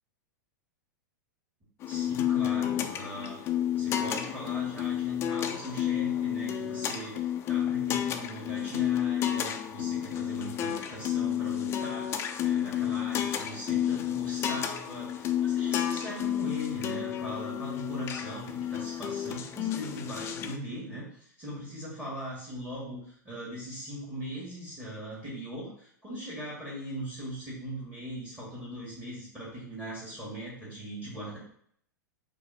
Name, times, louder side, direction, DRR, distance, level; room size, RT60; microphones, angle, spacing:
sound 1, 1.8-20.6, left 10 dB, 25° left, 0.4 m, -31 dB
voice 1, 1.9-3.4 3.7-12.1 12.4-21.1 21.4-31.4, right 1 dB, 15° right, -6 dB, 1.8 m, -40 dB
4.7 x 2.7 x 4.0 m, 0.64 s
figure-of-eight pair, 95°, 10 cm